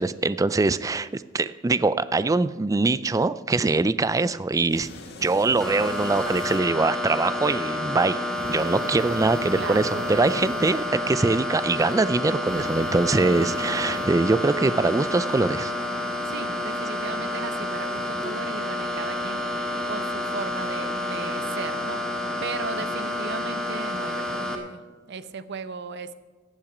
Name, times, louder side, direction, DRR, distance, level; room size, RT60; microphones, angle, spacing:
voice 1, 0.0-4.9 5.2-15.7, right 3 dB, 15° right, 15 dB, 0.3 m, -23 dB
sound 1, 4.7-6.6 8.4-10.7 12.5-14.1, left 1 dB, 55° left, 1.7 m, -39 dB
sound 2, 5.6-24.6, left 1 dB, 5° left, 1.5 m, -29 dB
voice 2, 9.5-10.1 16.3-19.4 19.9-22.0 22.4-24.8 25.1-26.1, right 4 dB, 60° right, 13 dB, 0.6 m, -36 dB
15.0 x 8.9 x 5.0 m, 1.4 s
head